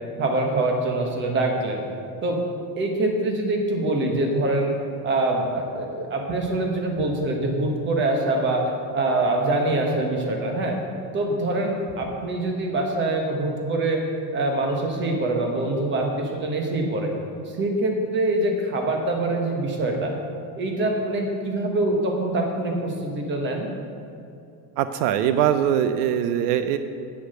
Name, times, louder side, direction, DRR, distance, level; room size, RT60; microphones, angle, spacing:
voice 1, 0.2-1.8 2.2-2.4 2.8-4.7 5.0-10.8 11.1-14.0 14.3-17.1 17.6-20.1 20.6-23.7, right 2 dB, 25° right, 2 dB, 1.2 m, -24 dB
voice 2, 24.8-26.8, right 10 dB, 75° right, 10 dB, 0.6 m, -22 dB
8.7 x 8.0 x 6.5 m, 2.5 s
cardioid pair, 175°, 48 cm